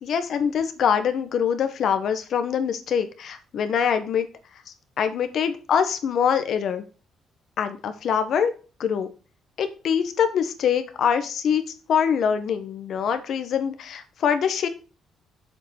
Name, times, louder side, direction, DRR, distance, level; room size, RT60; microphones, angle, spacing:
voice 1, 0.0-4.3 5.0-6.8 7.6-8.5 8.8-9.1 9.6-11.6 11.9-14.7, left 7 dB, 65° left, 9 dB, 1.2 m, -24 dB
7.6 x 5.2 x 5.9 m, 0.36 s
cardioid pair, 90°, 0 cm